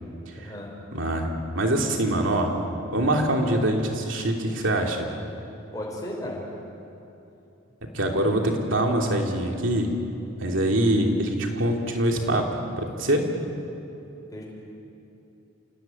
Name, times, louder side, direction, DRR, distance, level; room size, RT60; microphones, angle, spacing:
voice 1, 0.4-0.7 5.7-6.4 14.3-14.4, left 1 dB, 15° left, -2 dB, 5.6 m, -34 dB
voice 2, 0.9-2.5 2.9-5.0 7.9-9.9 10.4-12.4 12.8-13.2, right 1 dB, 65° right, 2 dB, 3.0 m, -24 dB
27.5 x 17.5 x 9.2 m, 2.9 s
head